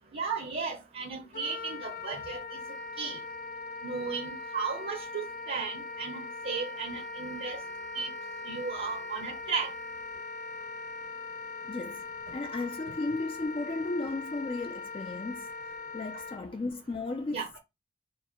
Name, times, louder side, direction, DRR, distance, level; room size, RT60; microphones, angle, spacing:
voice 1, 0.1-2.6 3.0-3.2 3.8-7.6 7.9-8.1 8.5-9.7 17.3-17.5, right 5 dB, 45° right, 0.7 m, -35 dB
Wind instrument woodwind instrument, 1.3-16.4, left 3 dB, 45° left, 0.8 m, -40 dB
voice 2, 11.6-15.5 15.9-17.6, left 3 dB, 25° left, 0.3 m, -35 dB
4.6 x 2.1 x 4.4 m
head